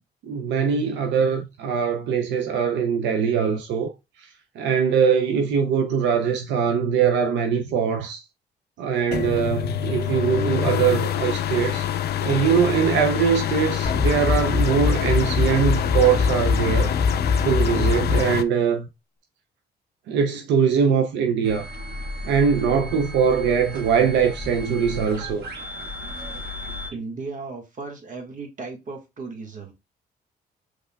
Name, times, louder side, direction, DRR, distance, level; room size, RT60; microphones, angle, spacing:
voice 1, 0.2-3.9 4.2-4.3 4.6-8.2 8.8-11.9 12.2-18.9 20.1-21.7 22.2-25.4, right 7 dB, 85° right, 0.6 m, -22 dB
sound 1, 9.1-18.4, left 11 dB, 65° left, 0.4 m, -26 dB
sound 2, 13.8-18.2, left 4 dB, 35° left, 1.2 m, -23 dB
sound 3, 21.4-26.9, left 1 dB, 65° right, 1.6 m, -35 dB
voice 2, 26.9-29.7, right 4 dB, 45° right, 1.5 m, -35 dB
5.5 x 3.6 x 2.2 m
cardioid pair, 85°, 18 cm